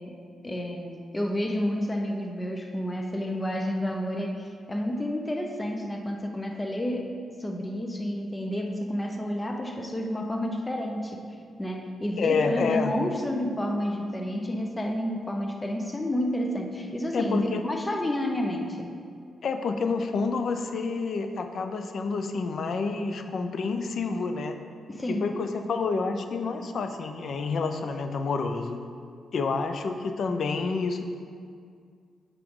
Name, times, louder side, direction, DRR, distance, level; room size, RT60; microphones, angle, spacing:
voice 1, 0.0-11.3 11.6-18.9 24.9-25.3, left 1 dB, 15° left, 3 dB, 0.6 m, -30 dB
voice 2, 12.2-12.9 17.1-17.7 19.4-24.6 25.1-28.8 29.3-31.0, left 4 dB, 60° left, 7 dB, 0.5 m, -28 dB
7.6 x 5.1 x 3.7 m, 2.2 s
cardioid pair, 90°, 0 cm